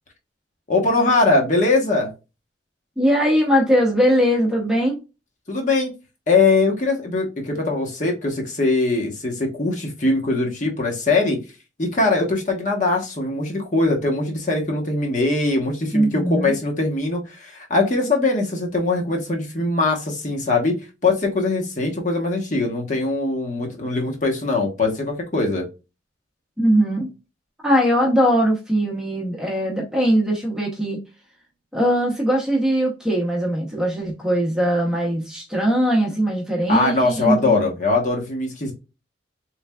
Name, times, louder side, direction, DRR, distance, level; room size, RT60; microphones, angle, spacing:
voice 1, 0.7-2.1 5.5-5.9 6.3-11.4 11.8-20.7 21.0-25.7 36.7-38.7, left 3 dB, 40° left, 0 dB, 1.0 m, -21 dB
voice 2, 3.0-5.0 15.9-16.5 26.6-27.1 27.6-31.0 31.7-37.7, equal, 5° right, -1 dB, 0.8 m, -20 dB
3.8 x 3.3 x 2.3 m, 0.28 s
head